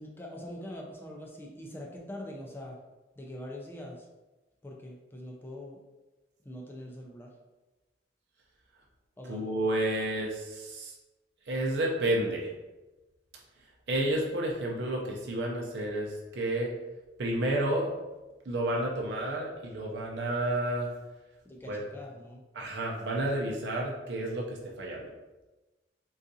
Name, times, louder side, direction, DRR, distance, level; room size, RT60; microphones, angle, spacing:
voice 1, 0.0-2.8 3.2-4.1 4.6-5.8 6.4-7.3 9.2-9.4 21.4-22.4, left 1 dB, 10° left, -1 dB, 0.3 m, -43 dB
voice 2, 9.3-10.9 11.5-12.5 13.9-16.7 17.2-17.9 18.5-20.9 21.7-21.8 22.5-25.1, right 1 dB, 75° right, -2 dB, 0.5 m, -30 dB
3.7 x 2.3 x 2.6 m, 1.1 s
head